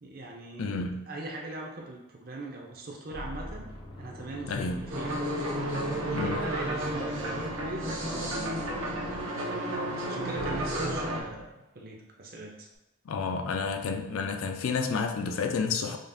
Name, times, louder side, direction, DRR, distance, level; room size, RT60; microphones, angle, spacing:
voice 1, 0.0-0.8 1.1-3.7 4.0-5.2 6.0-8.9 9.4-12.7, right 2 dB, 45° right, 0 dB, 0.6 m, -40 dB
voice 2, 0.6-1.0 4.5-4.8 6.1-6.4 13.1-16.0, left 4 dB, 85° left, 5 dB, 0.4 m, -30 dB
sound 1, 2.5-2.7 3.1-10.0 10.3-11.4, left 1 dB, 25° left, 0.4 m, -43 dB
sound 2, 4.9-11.2, right 1 dB, 85° right, 0.9 m, -32 dB
5.1 x 2.4 x 2.6 m, 0.99 s
head